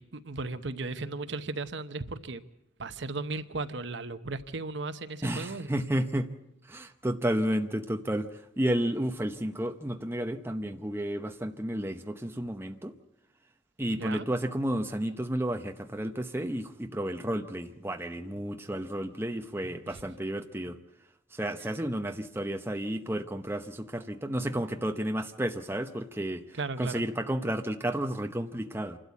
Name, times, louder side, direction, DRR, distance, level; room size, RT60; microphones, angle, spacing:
voice 1, 0.0-2.4 2.8-5.7 13.9-14.3 19.9-20.0 26.5-27.0, right 3 dB, 65° right, 11 dB, 0.9 m, -36 dB
voice 2, 5.2-6.3 6.7-12.9 13.8-20.8 21.3-29.0, right 1 dB, 10° right, 6 dB, 0.8 m, -32 dB
27.0 x 12.5 x 8.4 m, 0.87 s
head